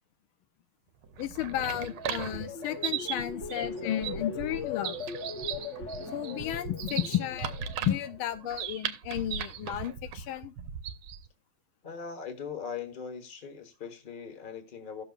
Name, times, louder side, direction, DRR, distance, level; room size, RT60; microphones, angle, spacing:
sound 1, 1.0-11.3, right 8 dB, 90° right, 1.6 m, -37 dB
voice 1, 1.2-5.0 6.1-7.5 7.8-10.5, left 12 dB, 90° left, 1.6 m, -33 dB
sound 2, 1.4-8.6 9.0-9.3, left 4 dB, 50° left, 1.0 m, -40 dB
voice 2, 11.8-15.0, left 6 dB, 25° left, 1.3 m, -40 dB
16.5 x 6.8 x 2.4 m
omnidirectional pair, 2.3 m